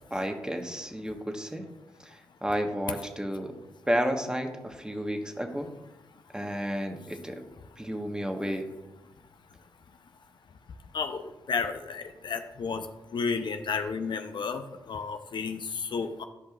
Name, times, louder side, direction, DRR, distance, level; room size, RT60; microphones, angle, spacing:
voice 1, 0.1-1.7 2.0-3.5 3.9-5.7 6.3-7.4 7.8-8.7, equal, 10° right, 4 dB, 1.2 m, -32 dB
voice 2, 11.5-12.8 13.1-16.2, left 5 dB, 60° left, 8 dB, 0.5 m, -32 dB
13.5 x 5.4 x 2.4 m, 1.0 s
supercardioid pair, 45°, 9 cm